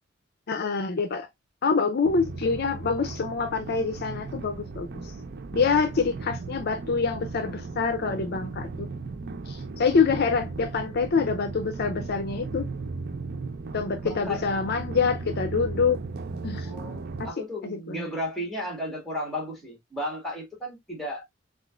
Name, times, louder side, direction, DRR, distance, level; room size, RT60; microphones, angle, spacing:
voice 1, 0.5-1.3 1.6-5.1 5.5-8.9 9.5-12.7 13.7-16.0 16.4-16.7 17.2-17.3 17.6-18.1, left 5 dB, 55° left, 0.5 m, -26 dB
sound 1, 2.0-17.3, right 3 dB, 55° right, 0.5 m, -36 dB
voice 2, 14.0-14.4 16.6-21.3, left 1 dB, ahead, 1.7 m, -34 dB
6.0 x 2.4 x 2.3 m
head